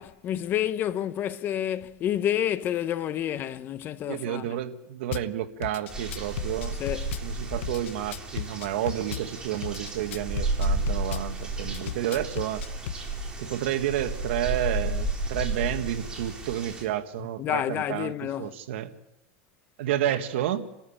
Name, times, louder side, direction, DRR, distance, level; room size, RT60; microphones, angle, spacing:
voice 1, 0.0-4.5 6.8-7.2 11.6-11.8 17.4-18.6, left 11 dB, 30° left, 0.7 m, -29 dB
voice 2, 4.1-6.8 7.2-12.6 13.4-18.9 19.8-20.6, right 12 dB, 70° right, 1.7 m, -30 dB
Drum kit / Bass drum, 5.1-5.3 5.6-7.3 7.6-9.3 9.6-11.3 11.7-13.0, left 12 dB, 80° left, 0.8 m, -35 dB
sound 1, 5.9-16.8, right 2 dB, 10° right, 3.9 m, -32 dB
29.0 x 13.5 x 8.7 m
supercardioid pair, 150°, 7 cm